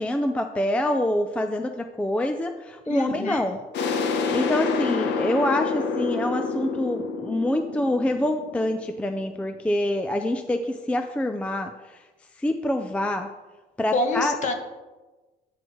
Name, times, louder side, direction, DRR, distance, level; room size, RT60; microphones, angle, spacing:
voice 1, 0.0-3.6 4.3-11.7 12.4-13.3 13.8-14.4, left 1 dB, 5° left, 7 dB, 0.3 m, -26 dB
voice 2, 2.9-3.4 13.9-14.5, left 2 dB, 40° left, 5 dB, 1.2 m, -26 dB
sound 1, 3.7-9.2, left 4 dB, 75° left, 1.0 m, -28 dB
9.9 x 6.2 x 4.6 m, 1.2 s
cardioid pair, 150°, 18 cm